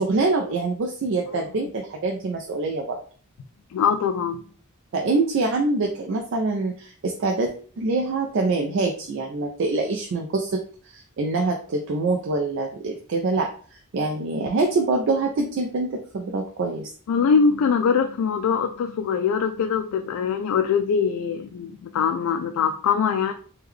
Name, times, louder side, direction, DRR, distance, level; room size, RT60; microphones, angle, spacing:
voice 1, 0.0-3.0 4.9-10.6 10.9-16.9, right 3 dB, 55° right, 2 dB, 0.4 m, -25 dB
voice 2, 3.7-4.4 17.1-23.3, left 6 dB, 80° left, 5 dB, 0.3 m, -22 dB
3.5 x 2.2 x 3.1 m, 0.43 s
head